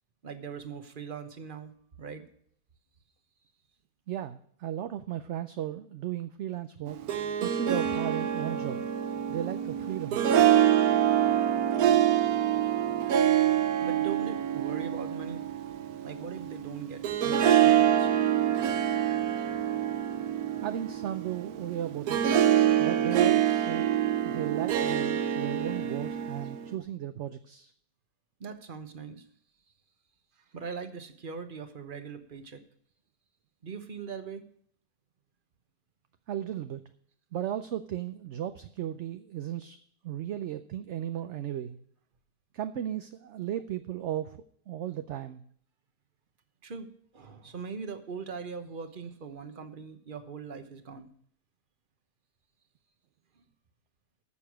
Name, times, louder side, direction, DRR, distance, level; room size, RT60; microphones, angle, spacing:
voice 1, 0.2-1.7 2.0-2.3 13.8-15.4 16.0-18.2 28.4-29.3 30.5-32.6 33.6-34.4 46.6-46.9 47.1-51.1 53.4-53.5, right 5 dB, 40° right, 8 dB, 1.2 m, -41 dB
voice 2, 4.1-7.0 7.4-8.8 9.3-10.2 20.6-22.3 22.8-27.7 36.3-36.8 37.3-39.8 40.0-41.8 42.5-45.4, right 11 dB, 65° right, 9 dB, 0.8 m, -35 dB
Harp, 6.9-26.7, right 10 dB, 85° right, 1.3 m, -26 dB
14.0 x 6.8 x 6.1 m, 0.63 s
omnidirectional pair, 1.5 m